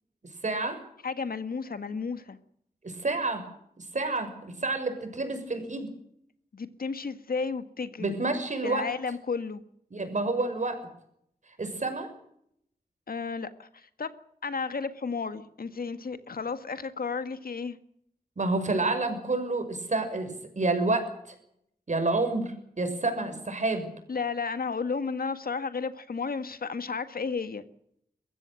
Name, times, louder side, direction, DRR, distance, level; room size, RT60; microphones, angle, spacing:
voice 1, 0.4-0.8 2.8-3.4 3.8-5.9 8.0-8.9 9.9-10.8 11.6-12.1 18.4-21.3 21.9-23.9, right 2 dB, 55° right, 7 dB, 6.3 m, -29 dB
voice 2, 1.0-2.4 6.5-8.2 8.6-9.6 13.1-14.1 14.4-17.8 24.1-27.6, left 5 dB, 75° left, 11 dB, 1.8 m, -33 dB
22.5 x 15.5 x 9.1 m, 0.72 s
wide cardioid pair, 75°, 15 cm